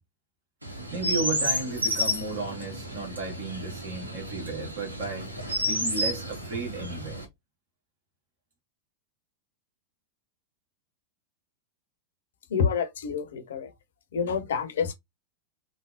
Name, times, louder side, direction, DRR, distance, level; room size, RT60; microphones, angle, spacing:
Chirp tweet, 0.6-7.2, equal, 80° right, 0.7 m, -31 dB
voice 1, 0.9-5.3 5.6-7.2, right 3 dB, 60° right, 1.1 m, -33 dB
voice 2, 12.5-13.7 14.1-14.9, left 6 dB, 60° left, 0.5 m, -28 dB
3.3 x 2.0 x 2.4 m
figure-of-eight pair, 90°, 0 cm